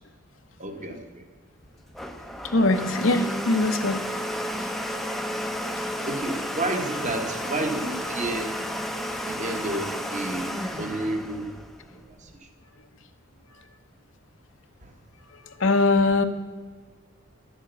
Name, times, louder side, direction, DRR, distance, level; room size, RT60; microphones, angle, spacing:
voice 1, 0.6-1.2 6.1-8.6 9.3-11.5 12.1-12.3 14.8-14.9, right 2 dB, 35° right, 6 dB, 1.3 m, -31 dB
Domestic sounds home sounds, 1.6-12.3, equal, ahead, 0.7 m, -32 dB
voice 2, 2.5-4.0 15.5-16.2, left 2 dB, 65° left, 6 dB, 0.8 m, -21 dB
11.5 x 7.4 x 8.1 m, 1.5 s
head